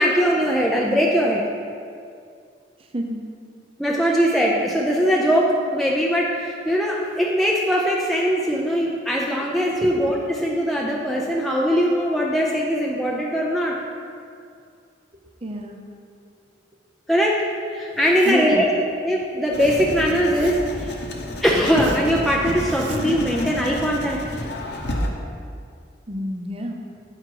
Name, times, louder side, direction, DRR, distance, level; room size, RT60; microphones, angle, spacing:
voice 1, 0.0-1.4 3.8-13.8 17.1-17.4 17.7-18.7 19.0-21.0 21.4-24.2, equal, ahead, -3 dB, 0.5 m, -21 dB
voice 2, 2.8-3.3 9.8-9.9 15.4-15.8 18.2-18.7 26.1-27.0, equal, 30° right, 2 dB, 0.7 m, -29 dB
Zipper (clothing), 17.9-18.6 19.2-19.8 20.1-20.8 21.3-22.2 22.6-23.5, right 4 dB, 80° right, 0.5 m, -40 dB
Writing, 19.5-25.1, left 1 dB, 70° left, 0.9 m, -30 dB
8.8 x 5.1 x 4.7 m, 2.3 s
head